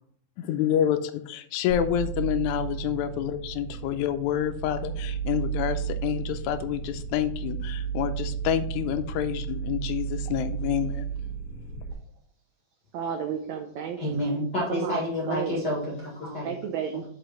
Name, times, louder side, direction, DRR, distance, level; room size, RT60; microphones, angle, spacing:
voice 1, 0.4-11.1, left 10 dB, 80° left, 9 dB, 1.7 m, -28 dB
sound 1, 1.7-11.9, right 7 dB, 65° right, 2.4 m, -33 dB
voice 2, 12.9-14.2 14.7-15.0 15.3-15.6 16.4-17.0, right 7 dB, 80° right, 4 dB, 1.6 m, -32 dB
voice 3, 14.0-16.5 16.9-17.0, equal, 40° left, -4 dB, 1.6 m, -29 dB
5.4 x 5.0 x 5.7 m, 0.63 s
omnidirectional pair, 3.9 m